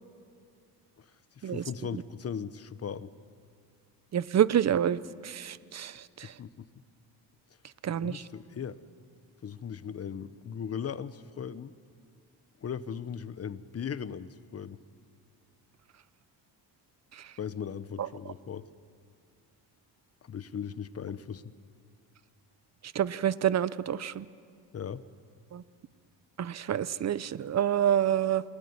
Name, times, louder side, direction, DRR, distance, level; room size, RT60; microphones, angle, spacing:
voice 1, 1.4-3.1 6.4-6.7 8.0-8.8 9.4-11.7 12.6-14.8 17.4-18.7 20.2-21.4 24.7-25.0, left 7 dB, 35° left, 14 dB, 1.0 m, -38 dB
voice 2, 4.1-6.3 7.8-8.2 17.2-17.3 18.0-18.1 22.9-24.2 25.5-25.6 26.4-28.4, right 10 dB, 40° right, 17 dB, 0.8 m, -28 dB
28.0 x 20.5 x 9.7 m, 2.2 s
cardioid pair, 105°, 41 cm